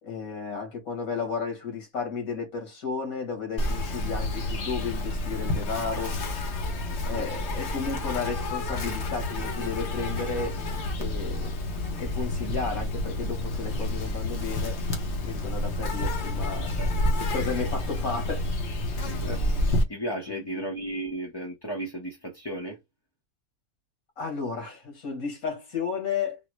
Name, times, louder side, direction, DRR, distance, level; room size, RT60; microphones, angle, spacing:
voice 1, 0.0-6.1 7.0-10.6 11.0-11.6 12.0-14.8 15.2-16.7 17.3-18.5 19.3-19.4 20.3-20.7 24.2-26.4, left 5 dB, 80° left, 2.0 m, -33 dB
Insect, 3.6-19.8, left 1 dB, 55° left, 1.1 m, -29 dB
voice 2, 6.9-7.3 16.8-16.9 19.0-19.4 19.9-22.8, right 1 dB, 25° left, 0.5 m, -35 dB
4.1 x 2.0 x 3.0 m
omnidirectional pair, 1.5 m